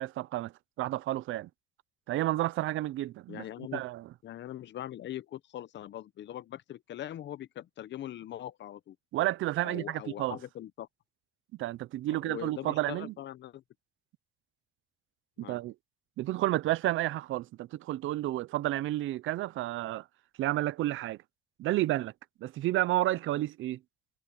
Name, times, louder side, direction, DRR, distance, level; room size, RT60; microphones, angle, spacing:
voice 1, 0.0-1.5 2.1-4.1 9.1-10.4 11.5-13.1 15.4-15.7 16.2-20.1 20.4-21.2 21.6-22.1 22.4-23.8, right 15 dB, 80° right, 0.6 m, -31 dB
voice 2, 3.3-3.8 4.2-9.0 9.6-10.9 12.1-13.6 15.4-15.6, left 12 dB, 65° left, 0.8 m, -41 dB
cardioid pair, 90°, 20 cm